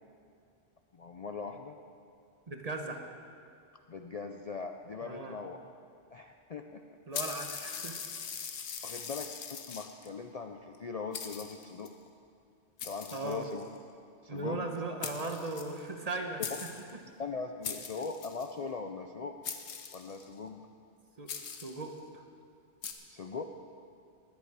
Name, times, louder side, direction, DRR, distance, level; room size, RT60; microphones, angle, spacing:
voice 1, 0.9-1.8 3.9-5.6 6.1-6.8 8.8-9.3 9.7-11.9 12.8-13.7 14.2-15.0 17.2-19.4 19.9-20.6 23.1-23.4, left 4 dB, 45° left, 5 dB, 0.5 m, -40 dB
voice 2, 2.5-3.1 5.0-5.4 7.1-8.2 13.1-13.4 14.3-16.8 21.2-22.2, right 3 dB, 35° right, 4 dB, 1.1 m, -38 dB
sound 1, 7.1-10.1 10.8-10.9 11.1-11.9 12.8-13.8 14.8-14.9 15.0-16.1 16.4-16.9 17.6-18.5 19.4-20.3 21.3-21.9 22.8-22.9, left 6 dB, 80° left, 1.2 m, -41 dB
20.0 x 8.5 x 4.8 m, 2.4 s
omnidirectional pair, 1.1 m